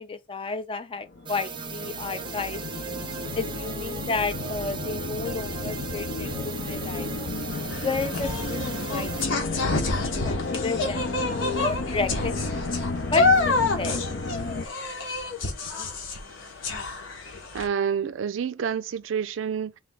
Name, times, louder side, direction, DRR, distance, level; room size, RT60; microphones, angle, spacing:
voice 1, 0.0-2.6 3.3-7.1 7.8-11.1 11.6-12.7 13.0-14.2, left 3 dB, 30° left, 0.5 m, -32 dB
sound 1, 1.1-14.6, left 3 dB, 65° left, 0.7 m, -33 dB
sound 2, 1.2-9.2, right 6 dB, 25° right, 0.6 m, -37 dB
sound 3, 7.5-17.7, left 3 dB, 85° left, 1.2 m, -28 dB
voice 2, 17.5-19.8, right 7 dB, 75° right, 0.4 m, -28 dB
3.4 x 3.3 x 3.8 m
head